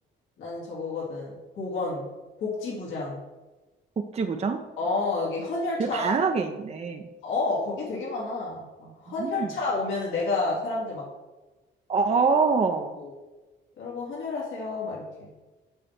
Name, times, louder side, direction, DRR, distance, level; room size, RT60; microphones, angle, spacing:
voice 1, 0.4-2.1 2.4-3.2 4.8-6.0 7.2-11.0 13.0-13.1 13.8-15.3, left 3 dB, 80° left, -5 dB, 2.3 m, -30 dB
voice 2, 4.0-4.6 5.8-7.1 9.2-9.5 11.9-13.0, right 4 dB, 30° right, 5 dB, 0.6 m, -25 dB
7.7 x 3.3 x 6.4 m, 1.2 s
cardioid pair, 90°, 20 cm